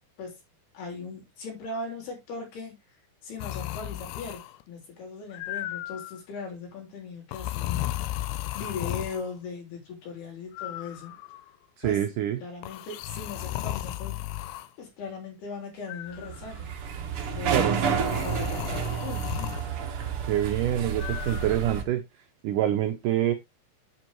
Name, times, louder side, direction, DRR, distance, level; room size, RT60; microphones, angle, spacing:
voice 1, 0.7-2.8 3.2-8.2 8.5-11.1 11.8-12.0 12.4-14.2 14.8-16.7 17.4-19.6, left 4 dB, 70° left, 5.6 m, -39 dB
sound 1, 3.4-4.6 5.3-6.2 7.3-9.3 10.5-11.5 12.6-14.7 15.9-16.6 17.9-19.7 21.0-21.5, left 15 dB, 85° left, 2.7 m, -35 dB
voice 2, 11.8-12.4 17.5-17.8 20.3-22.0 22.4-23.3, right 12 dB, 90° right, 1.8 m, -26 dB
sound 2, 16.2-21.8, right 6 dB, 70° right, 1.3 m, -30 dB
8.7 x 7.6 x 3.1 m
omnidirectional pair, 4.8 m